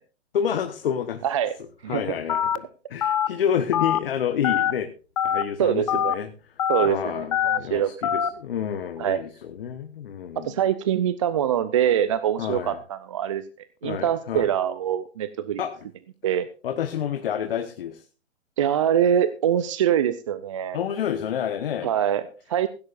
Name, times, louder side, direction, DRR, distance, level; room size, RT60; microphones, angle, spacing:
voice 1, 0.3-1.2 1.9-4.9 5.2-6.3 6.8-10.6 12.4-12.8 13.8-14.5 15.6-15.7 16.6-18.0 20.7-21.9, left 8 dB, 50° left, 7 dB, 1.3 m, -29 dB
voice 2, 1.2-1.5 1.8-2.2 5.6-6.1 6.7-7.9 9.0-9.2 10.4-15.6 16.2-16.5 18.6-20.9 21.8-22.7, right 10 dB, 25° right, 13 dB, 0.5 m, -24 dB
Telephone, 2.3-2.6 3.0-3.3 3.7-4.0 4.4-4.7 5.2-5.4 5.9-6.1 6.6-6.9 7.3-7.6 8.0-8.3, left 9 dB, 30° left, 0.5 m, -23 dB
16.0 x 15.5 x 2.5 m, 0.36 s
hypercardioid pair, 135°, 36 cm